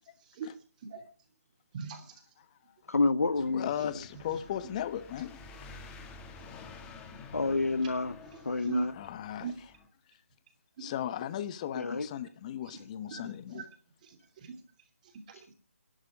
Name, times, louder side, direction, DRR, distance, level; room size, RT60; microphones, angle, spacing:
voice 1, 1.7-2.1 8.6-8.9 9.4-9.5 10.8-10.9 13.1-13.2 13.5-13.6 14.0-14.6 15.3-15.5, right 5 dB, 35° right, 2.9 m, -38 dB
voice 2, 2.9-3.7 7.3-8.2 8.4-8.9 11.7-12.1, left 3 dB, 85° left, 1.1 m, -28 dB
sound 1, 3.2-9.9, left 4 dB, 15° left, 1.8 m, -50 dB
voice 3, 3.5-5.7 8.9-9.7 10.8-13.6, left 10 dB, 30° left, 1.0 m, -37 dB
18.5 x 11.5 x 5.2 m
figure-of-eight pair, 155°, 8 cm